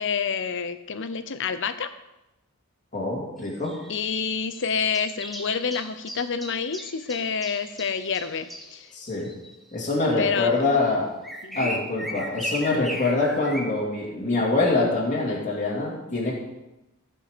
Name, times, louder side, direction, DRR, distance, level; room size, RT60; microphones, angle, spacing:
voice 1, 0.0-1.9 3.9-8.9 10.2-10.6 11.4-11.7, left 6 dB, 60° left, 11 dB, 0.7 m, -28 dB
voice 2, 2.9-3.7 8.9-9.3 9.7-11.1 11.5-16.4, left 2 dB, 35° left, -5 dB, 2.3 m, -24 dB
sound 1, 3.4-9.5 10.4-10.5 11.2-13.7, equal, ahead, 1.0 m, -37 dB
15.5 x 5.6 x 5.1 m, 0.96 s
head